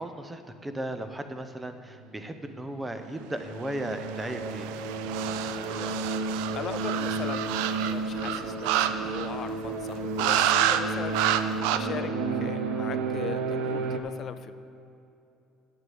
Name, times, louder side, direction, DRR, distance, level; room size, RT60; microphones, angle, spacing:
voice 1, 0.0-4.7, right 1 dB, 10° right, 8 dB, 0.7 m, -36 dB
sound 1, 2.8-14.0, right 3 dB, 70° right, 1.0 m, -32 dB
sound 2, 3.9-9.5 10.2-10.8 11.1-11.8, right 11 dB, 85° right, 0.5 m, -29 dB
voice 2, 5.6-6.0 6.5-11.2 11.7-14.5, left 8 dB, 35° left, 13 dB, 0.4 m, -39 dB
8.4 x 8.0 x 7.8 m, 2.7 s
cardioid pair, 150°, 0 cm